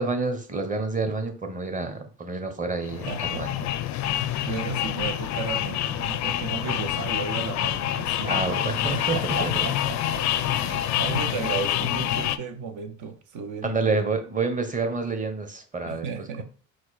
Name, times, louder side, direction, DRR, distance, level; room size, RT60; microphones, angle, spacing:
voice 1, 0.0-3.5 8.2-9.5 10.3-10.5 13.6-16.1, right 3 dB, 20° right, 1.1 m, -28 dB
sound 1, 2.8-12.4, left 12 dB, 55° left, 0.5 m, -27 dB
voice 2, 3.0-3.7 4.1-10.3 10.6-14.0 15.8-16.4, right 6 dB, 55° right, 0.9 m, -35 dB
4.6 x 2.2 x 4.2 m
hypercardioid pair, 70°, 36 cm